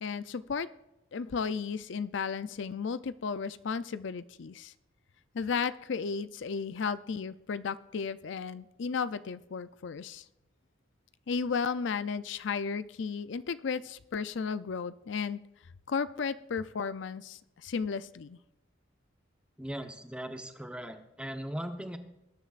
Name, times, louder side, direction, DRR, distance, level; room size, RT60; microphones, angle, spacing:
voice 1, 0.0-0.7 1.1-4.7 5.3-10.2 11.3-15.4 15.9-18.4, left 5 dB, 65° left, 14 dB, 0.5 m, -34 dB
voice 2, 19.6-22.0, equal, 5° right, 6 dB, 1.0 m, -39 dB
20.5 x 10.0 x 2.5 m, 0.91 s
head